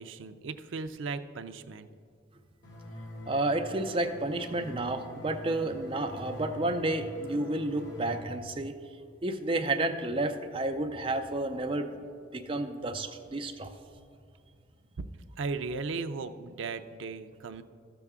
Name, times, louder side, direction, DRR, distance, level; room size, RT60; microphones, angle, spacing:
voice 1, 0.0-1.9 15.0-15.1 15.4-17.6, right 4 dB, 85° right, 9 dB, 0.4 m, -36 dB
sound 1, 2.6-8.2, left 1 dB, 70° left, 1.9 m, -45 dB
voice 2, 3.3-8.7 9.2-11.9 12.3-13.7, right 2 dB, 30° right, 6 dB, 0.5 m, -31 dB
13.0 x 6.9 x 3.6 m, 2.2 s
head